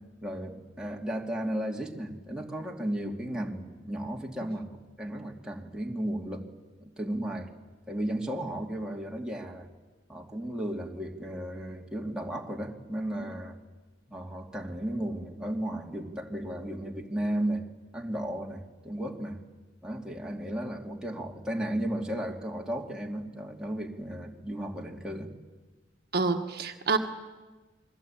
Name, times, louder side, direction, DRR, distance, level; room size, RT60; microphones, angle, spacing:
voice 1, 0.2-6.4 6.8-7.5 7.9-9.7 10.1-13.6 14.1-17.6 17.9-19.4 19.8-25.3, right 1 dB, 5° right, -1 dB, 2.7 m, -34 dB
voice 2, 26.1-27.0, right 4 dB, 60° right, 5 dB, 1.6 m, -27 dB
28.5 x 22.5 x 9.0 m, 1.3 s
head